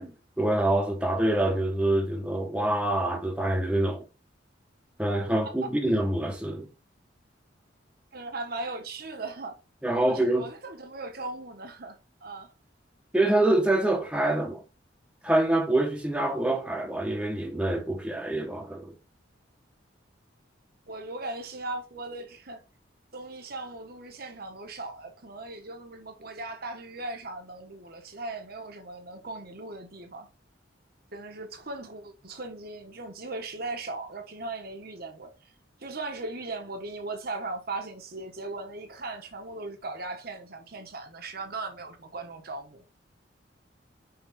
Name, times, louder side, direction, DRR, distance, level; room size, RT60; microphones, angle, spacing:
voice 1, 0.0-4.0 5.0-6.7 9.8-10.5 13.1-14.6 15.2-18.9, right 1 dB, 5° right, 1.1 m, -26 dB
voice 2, 8.1-9.6 10.1-12.0 12.2-12.5 20.9-22.6 23.1-30.3 31.1-35.3 35.8-42.8, right 2 dB, 55° right, 1.3 m, -38 dB
5.9 x 5.2 x 3.6 m
head